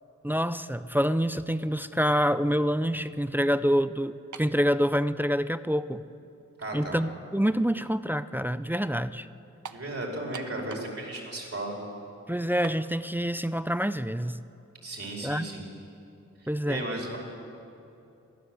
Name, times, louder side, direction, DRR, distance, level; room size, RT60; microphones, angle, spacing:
voice 1, 0.2-4.1 4.4-6.0 6.7-9.3 12.3-14.4 15.2-15.5 16.5-16.8, equal, 5° right, 13 dB, 0.5 m, -26 dB
sound 1, 4.3-4.6 5.5-5.6 9.6-9.9 10.3-11.0 11.3-11.4 12.6-12.8, right 6 dB, 75° right, 0.9 m, -41 dB
voice 2, 6.6-7.0 9.7-11.8 14.8-15.7 16.4-17.2, right 1 dB, 50° right, -1 dB, 5.2 m, -35 dB
23.0 x 16.0 x 7.8 m, 2.8 s
wide cardioid pair, 85°, 30 cm